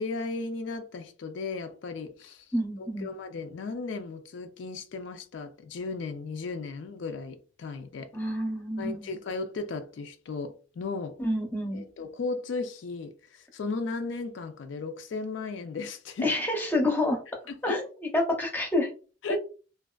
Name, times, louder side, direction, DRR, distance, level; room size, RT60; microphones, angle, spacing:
voice 1, 0.0-2.5 2.8-8.1 8.8-11.2 11.7-16.3 17.5-17.8 19.2-19.4, left 3 dB, 70° left, 0.4 m, -35 dB
voice 2, 2.5-3.1 8.1-9.1 11.2-11.8 16.2-17.2 17.6-18.9 19.3-19.4, left 1 dB, 10° left, 0.6 m, -28 dB
2.5 x 2.3 x 2.2 m
head